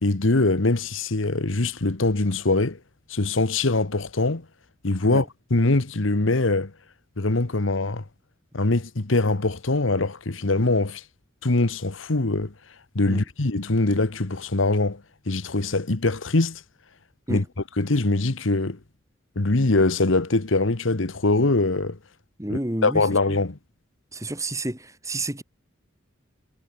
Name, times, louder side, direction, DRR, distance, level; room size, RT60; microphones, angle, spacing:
voice 1, 0.0-2.8 3.1-4.5 4.8-6.7 7.2-8.0 8.5-11.0 11.4-12.5 12.9-16.6 17.3-18.8 19.3-22.0 22.5-23.6, left 2 dB, 85° left, 1.4 m, -23 dB
voice 2, 22.4-23.0 23.3-23.4 24.1-25.4, right 1 dB, 15° right, 2.8 m, -30 dB
head